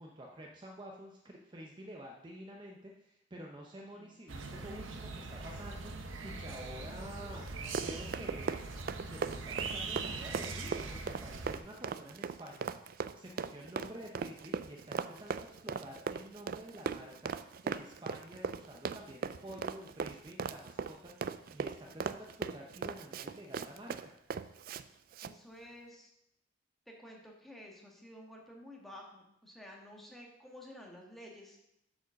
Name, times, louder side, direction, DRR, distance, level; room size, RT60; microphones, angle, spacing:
voice 1, 0.0-8.6 9.1-12.7 13.1-24.1, equal, 25° right, 0 dB, 0.7 m, -49 dB
sound 1, 4.3-11.6, right 3 dB, 85° right, 0.8 m, -42 dB
Run, 7.5-24.8 25.1-25.3, right 6 dB, 50° right, 0.3 m, -38 dB
voice 2, 25.2-26.1 26.9-31.6, left 1 dB, ahead, -1 dB, 1.4 m, -52 dB
7.9 x 5.0 x 6.3 m, 0.81 s
head